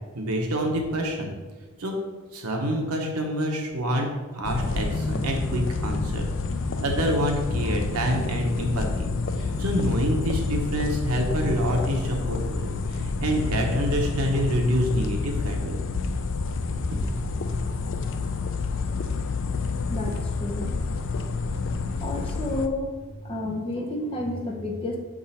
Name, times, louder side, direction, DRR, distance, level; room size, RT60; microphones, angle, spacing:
voice 1, 0.2-1.3 1.8-1.9 2.3-6.2 6.8-9.1 9.4-15.8, equal, 90° right, 2 dB, 1.0 m, -27 dB
sound 1, 4.4-22.7, left 4 dB, 55° left, 0.4 m, -28 dB
voice 2, 19.9-20.7 22.0-22.9 23.2-25.0, left 1 dB, 25° left, 0 dB, 0.7 m, -30 dB
6.3 x 3.8 x 4.2 m, 1.3 s
head